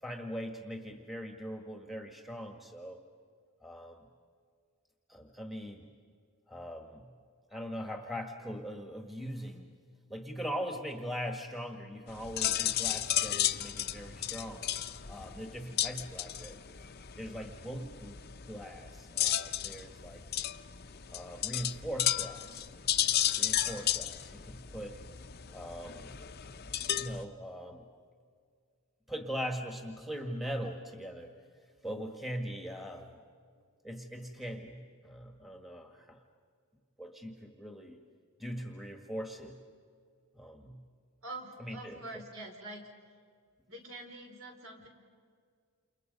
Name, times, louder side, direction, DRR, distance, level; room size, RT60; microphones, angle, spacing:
voice 1, 0.0-3.0 3.6-4.1 5.1-5.9 6.5-7.1 7.5-9.7 10.1-14.6 15.1-16.6 17.2-18.2 18.5-20.2 21.1-22.7 23.0-25.0 25.5-26.2 27.0-27.9 29.1-31.3 31.8-33.2 33.8-36.2 37.0-38.0 38.4-39.6 40.3-40.8 41.6-42.2, equal, ahead, 4 dB, 1.6 m, -41 dB
sound 1, 12.1-27.2, left 12 dB, 45° left, 0.7 m, -34 dB
voice 2, 41.2-42.8 43.7-44.9, right 2 dB, 65° right, 2 dB, 4.7 m, -45 dB
29.0 x 29.0 x 5.4 m, 2.1 s
head